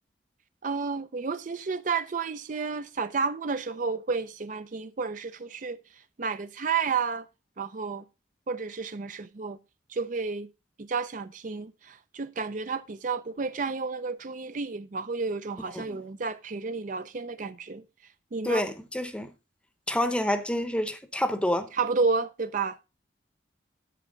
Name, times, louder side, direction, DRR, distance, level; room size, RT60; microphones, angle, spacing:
voice 1, 0.6-5.8 6.2-7.3 7.6-8.0 8.5-9.6 9.9-10.5 10.8-17.8 18.3-18.6 21.7-22.8, right 4 dB, 45° right, 0.5 m, -31 dB
voice 2, 18.4-19.3 19.9-21.7, left 1 dB, 5° left, 0.8 m, -28 dB
11.0 x 8.0 x 3.8 m
head